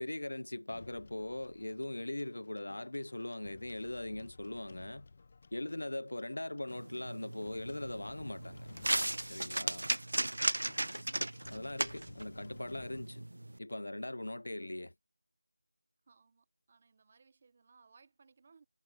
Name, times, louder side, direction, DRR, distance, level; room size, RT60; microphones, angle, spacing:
voice 1, 0.0-5.1 5.5-8.7 9.3-9.9 11.5-13.2 13.6-14.9, left 1 dB, 70° left, 0.4 m, -40 dB
sound 1, 0.7-13.0, left 4 dB, 20° left, 0.5 m, -57 dB
sound 2, 6.7-13.6, right 1 dB, 75° right, 0.3 m, -37 dB
voice 2, 16.1-18.7, right 5 dB, 15° right, 0.8 m, -64 dB
figure-of-eight pair, 180°, 0 cm